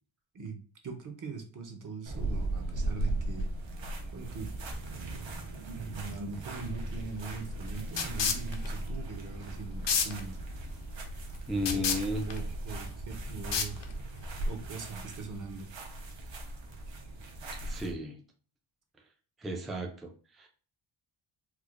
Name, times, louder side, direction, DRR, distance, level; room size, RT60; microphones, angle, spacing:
voice 1, 0.8-3.5 4.1-4.5 5.7-10.4 11.7-11.9 12.3-13.8 14.5-15.7, right 4 dB, 40° right, 4 dB, 0.7 m, -41 dB
sound 1, 2.1-17.9, right 2 dB, 70° right, 0.8 m, -38 dB
sound 2, 6.6-14.2, left 4 dB, 60° left, 0.6 m, -34 dB
voice 2, 11.5-12.3 17.6-18.2 19.4-20.5, equal, ahead, 1 dB, 0.3 m, -34 dB
4.6 x 2.1 x 2.4 m, 0.39 s
wide cardioid pair, 140°, 48 cm